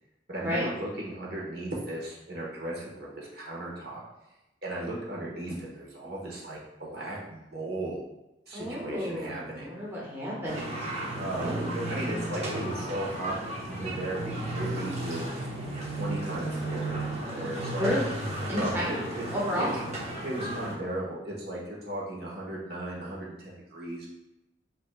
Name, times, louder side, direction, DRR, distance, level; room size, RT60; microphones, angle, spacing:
voice 1, 0.3-4.0 4.6-8.0 8.5-9.7 11.1-15.5 16.0-17.0 17.3-17.9 18.5-19.3 19.6-20.0 20.2-24.1, right 1 dB, 60° right, -4 dB, 1.3 m, -36 dB
voice 2, 8.5-10.7 11.4-11.7 17.8-18.1 18.5-19.7, equal, 15° right, -6 dB, 1.0 m, -31 dB
sound 1, 10.4-20.7, right 1 dB, 35° right, 1.0 m, -34 dB
8.1 x 2.8 x 2.3 m, 0.93 s
head